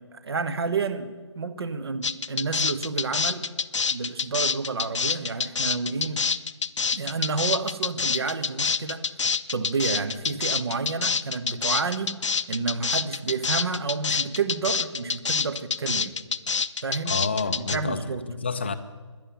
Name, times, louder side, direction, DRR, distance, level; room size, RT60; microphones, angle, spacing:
voice 1, 0.0-3.5 3.9-6.3 6.9-9.0 9.5-12.2 12.5-16.2 16.8-18.2, right 4 dB, 55° right, 10 dB, 1.0 m, -30 dB
sound 1, 2.0-17.8, left 5 dB, 75° left, 0.5 m, -26 dB
voice 2, 17.0-18.8, left 4 dB, 20° left, 10 dB, 0.4 m, -29 dB
11.0 x 10.5 x 6.9 m, 1.4 s
figure-of-eight pair, 170°, 16 cm